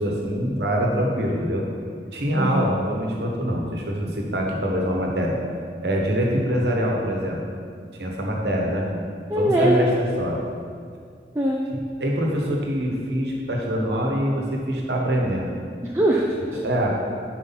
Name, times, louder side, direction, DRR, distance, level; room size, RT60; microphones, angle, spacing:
voice 1, 0.0-1.6 2.1-5.4 5.8-7.4 8.0-8.9 9.3-10.4 12.0-15.5 16.6-16.9, equal, 75° right, -1 dB, 1.1 m, -24 dB
voice 2, 2.4-2.7 9.3-9.9 11.4-11.7 15.8-16.6, right 1 dB, 15° right, -3 dB, 0.4 m, -22 dB
5.6 x 4.6 x 5.7 m, 2.2 s
head